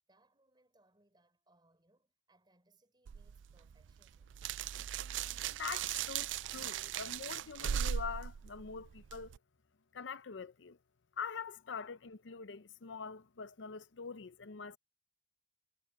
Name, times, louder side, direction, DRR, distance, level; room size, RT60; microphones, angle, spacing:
voice 1, 0.1-4.4, right 2 dB, 25° right, 5.1 m, -72 dB
sound 1, 3.1-9.4, right 9 dB, 85° right, 0.4 m, -39 dB
sound 2, 4.8-10.0, equal, 15° left, 6.1 m, -68 dB
voice 2, 5.5-9.4 9.9-10.8 11.2-14.8, left 6 dB, 80° left, 0.6 m, -44 dB
head